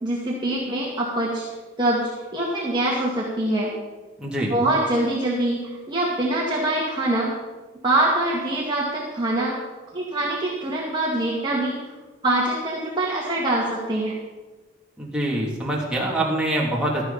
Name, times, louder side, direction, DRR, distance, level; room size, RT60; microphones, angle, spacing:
voice 1, 0.0-1.4 1.8-3.7 4.5-7.4 7.8-9.5 9.9-11.8 12.2-14.1, right 1 dB, 25° right, -5 dB, 2.2 m, -24 dB
voice 2, 4.2-4.5 15.0-17.0, right 1 dB, 5° right, -5 dB, 3.0 m, -24 dB
16.5 x 13.0 x 4.3 m, 1.2 s
head